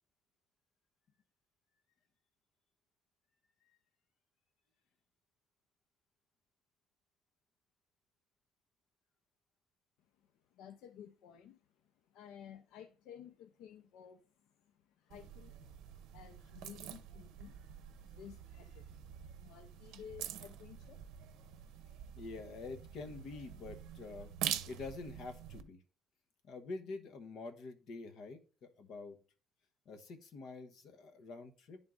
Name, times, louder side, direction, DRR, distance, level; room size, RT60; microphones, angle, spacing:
voice 1, 10.2-22.2, left 9 dB, 75° left, 0.5 m, -55 dB
sound 1, 15.1-25.6, right 11 dB, 85° right, 0.6 m, -46 dB
voice 2, 22.2-25.8 26.4-29.2 29.9-31.8, left 3 dB, 50° left, 1.1 m, -47 dB
10.5 x 3.7 x 3.8 m
cardioid pair, 170°, 0 cm